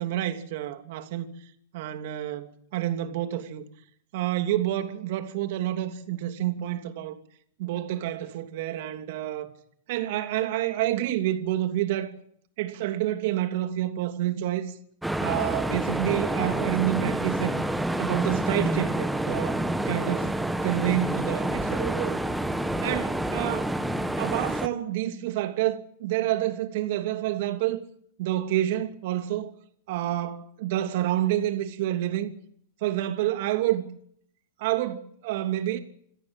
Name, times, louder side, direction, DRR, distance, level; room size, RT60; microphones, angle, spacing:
voice 1, 0.0-1.3 1.7-3.6 4.1-7.2 7.6-9.5 9.9-12.1 12.6-14.8 15.2-17.5 18.0-19.6 19.9-20.3 20.6-22.2 22.8-23.7 24.2-27.8 28.2-29.5 29.9-32.3 32.8-33.9 34.6-35.8, right 13 dB, 65° right, 2.9 m, -28 dB
sound 1, 15.0-24.7, right 1 dB, 5° right, 1.6 m, -28 dB
28.0 x 14.0 x 9.0 m
hypercardioid pair, 120°, 0 cm